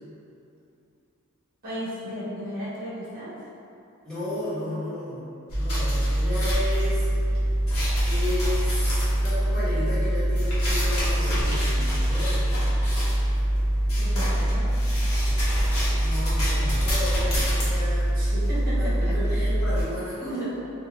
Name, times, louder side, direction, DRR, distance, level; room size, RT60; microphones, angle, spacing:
voice 1, 1.6-3.3 14.0-14.7 18.1-19.5 20.2-20.4, equal, 40° right, -10 dB, 1.0 m, -35 dB
voice 2, 4.0-5.2 5.5-7.1 8.0-12.5 16.0-18.1 18.7-20.4, left 1 dB, 5° left, -16 dB, 1.3 m, -33 dB
sound 1, 5.5-19.8, equal, 80° left, 0.9 m, -24 dB
2.7 x 2.4 x 2.9 m, 2.7 s
head